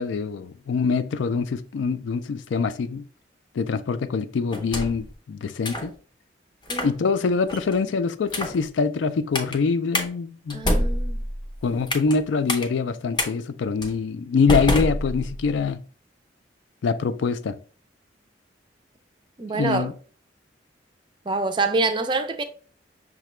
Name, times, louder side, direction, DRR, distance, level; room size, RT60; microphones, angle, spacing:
voice 1, 0.0-3.0 3.6-5.9 6.8-10.6 11.6-15.8 16.8-17.6 19.5-19.9, left 5 dB, 80° left, 0.4 m, -24 dB
sound 1, 4.5-5.1 5.6-5.9 6.6-6.9 7.5-7.8 8.3-8.6 9.3-9.6 9.9-10.1 10.5-12.2 12.5-12.6 13.2-13.3 13.8-14.0 14.5-15.5, left 1 dB, 25° left, 0.6 m, -26 dB
voice 2, 10.5-11.2 19.4-19.9 21.3-22.4, right 3 dB, 25° right, 0.4 m, -25 dB
5.7 x 2.2 x 3.1 m
head